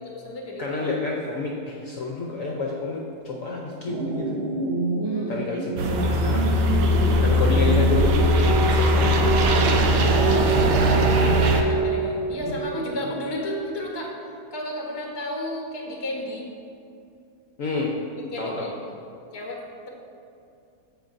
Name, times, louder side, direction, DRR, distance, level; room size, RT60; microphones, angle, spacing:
voice 1, 0.0-0.6 5.0-5.5 6.9-7.1 10.4-10.6 10.9-14.1 14.5-16.5 18.3-18.9 19.3-19.9, left 1 dB, 20° left, -1 dB, 0.9 m, -33 dB
voice 2, 0.6-4.4 5.3-6.5 7.2-9.4 10.3-11.2 17.6-17.9 18.4-18.7, left 3 dB, 60° left, -1 dB, 1.0 m, -29 dB
sound 1, 3.9-12.8, right 2 dB, 60° right, 0.7 m, -27 dB
sound 2, 5.8-11.6, equal, 80° right, 1.3 m, -20 dB
15.0 x 5.1 x 2.6 m, 2.6 s
omnidirectional pair, 1.9 m